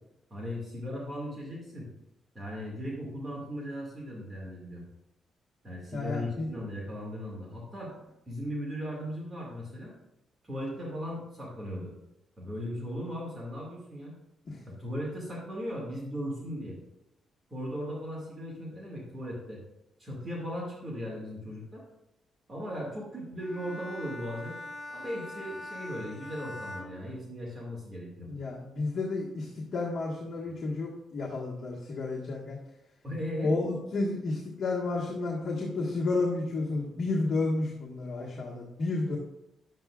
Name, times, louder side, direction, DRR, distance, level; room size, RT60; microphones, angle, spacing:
voice 1, 0.3-1.9 2.3-4.8 5.6-7.9 8.3-9.9 10.4-11.9 12.4-14.1 14.6-16.8 17.5-19.6 20.0-21.8 22.5-24.5 24.9-28.3 33.0-33.5, equal, 25° right, -4 dB, 2.2 m, -37 dB
voice 2, 5.9-6.5 14.5-14.6 28.3-32.6 33.4-39.2, left 3 dB, 50° left, -4 dB, 1.6 m, -31 dB
Bowed string instrument, 23.4-27.9, left 1 dB, 25° left, 0.7 m, -43 dB
10.5 x 7.6 x 2.5 m, 0.88 s
cardioid pair, 115°, 0 cm